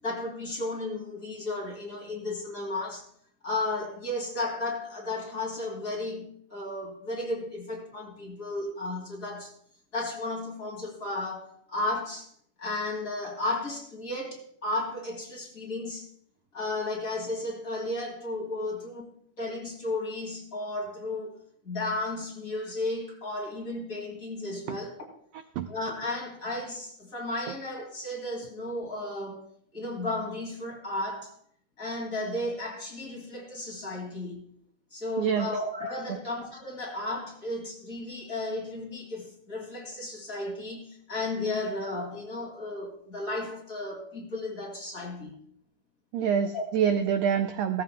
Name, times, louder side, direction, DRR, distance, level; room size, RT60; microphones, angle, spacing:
voice 1, 0.0-3.0 3.4-9.5 9.9-12.3 12.6-16.1 16.5-19.1 19.4-21.4 21.6-25.1 25.7-29.4 29.7-31.3 31.8-34.4 34.9-45.4 46.5-46.6, left 2 dB, 25° left, 2.5 m, -34 dB
voice 2, 35.2-35.5 46.1-47.8, right 8 dB, 85° right, 1.5 m, -26 dB
17.5 x 14.0 x 2.2 m
omnidirectional pair, 3.7 m